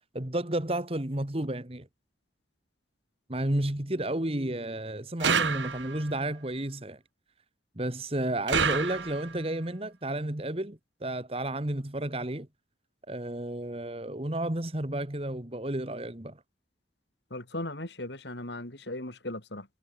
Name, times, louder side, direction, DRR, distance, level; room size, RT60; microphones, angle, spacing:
voice 1, 0.1-1.9 3.3-7.0 7.8-12.5 13.1-16.4, right 1 dB, 30° right, 1.7 m, -32 dB
sound 1, 5.2-6.1 8.5-9.4, right 6 dB, 80° right, 2.4 m, -28 dB
voice 2, 17.3-19.7, left 1 dB, 65° left, 4.0 m, -37 dB
head